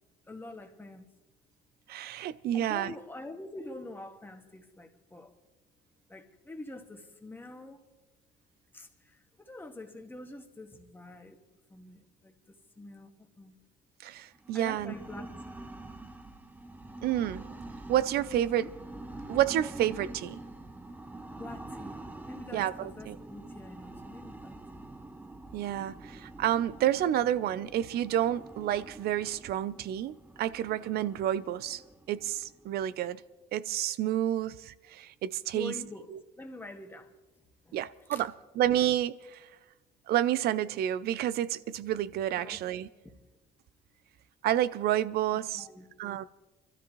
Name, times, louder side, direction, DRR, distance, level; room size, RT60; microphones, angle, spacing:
voice 1, 0.3-1.1 2.5-5.3 6.1-7.8 8.7-11.4 11.7-13.5 14.5-15.3 15.5-15.7 18.3-18.7 21.3-24.9 35.5-37.1 37.7-37.8 38.1-38.2 42.3-42.6 43.0-43.1 45.3-45.9, left 2 dB, 10° left, 1.6 m, -46 dB
voice 2, 1.9-2.9 14.0-14.9 17.0-17.4 17.9-18.7 19.2-20.4 22.5-23.2 25.5-31.8 32.1-33.2 33.5-35.8 36.1-36.2 37.7-39.5 40.1-42.9 44.4-45.7 46.0-46.2, right 12 dB, 70° right, 0.5 m, -30 dB
sound 1, 14.4-33.1, right 2 dB, 10° right, 0.8 m, -46 dB
25.0 x 13.0 x 3.1 m
cardioid pair, 110°, 17 cm